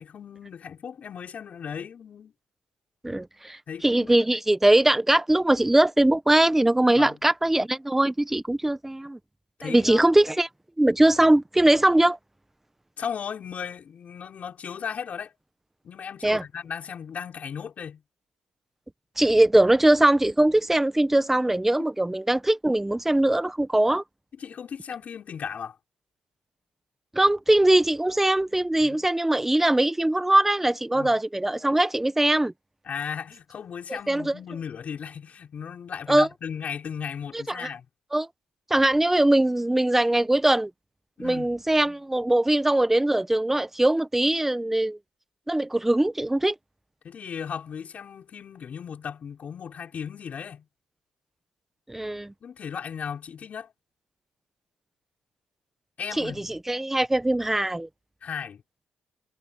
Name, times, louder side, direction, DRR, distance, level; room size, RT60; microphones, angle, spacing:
voice 1, 0.0-2.3 3.7-4.2 7.0-7.2 9.6-10.0 13.0-15.3 15.8-18.0 24.4-25.8 28.8-29.0 30.9-31.2 32.9-37.9 41.2-41.5 47.0-50.7 52.4-53.7 56.0-56.5 58.2-58.6, left 7 dB, 50° left, 5.5 m, -36 dB
voice 2, 3.0-9.2 9.6-10.5 10.8-12.2 16.2-16.4 19.2-24.0 27.1-32.5 34.1-34.3 36.1-36.3 37.3-37.7 38.1-38.3 38.7-40.7 41.2-45.0 45.5-46.5 51.9-52.3 56.2-57.9, right 1 dB, 10° right, 1.1 m, -21 dB
cardioid pair, 90°, 3 cm